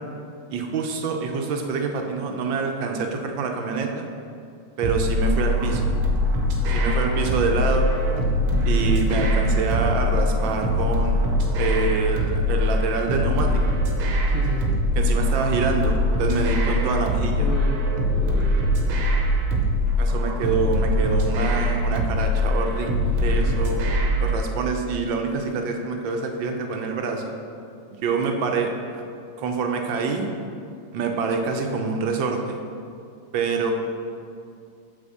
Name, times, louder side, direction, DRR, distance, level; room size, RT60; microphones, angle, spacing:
voice 1, 0.5-4.1 4.8-5.9 6.7-7.9 8.7-13.6 15.0-17.5 20.0-23.8 24.2-27.3 28.0-29.0 29.4-30.3 30.9-32.6 33.3-33.7, right 4 dB, 70° right, 3 dB, 1.4 m, -26 dB
sound 1, 4.8-24.4, left 1 dB, 85° right, 1.8 m, -22 dB
sound 2, 8.2-11.4, left 2 dB, 50° left, 1.3 m, -33 dB
voice 2, 14.3-14.7 17.4-17.8 18.0-18.6, left 6 dB, 80° left, -1 dB, 1.5 m, -32 dB
7.0 x 4.3 x 6.6 m, 2.3 s
omnidirectional pair, 2.3 m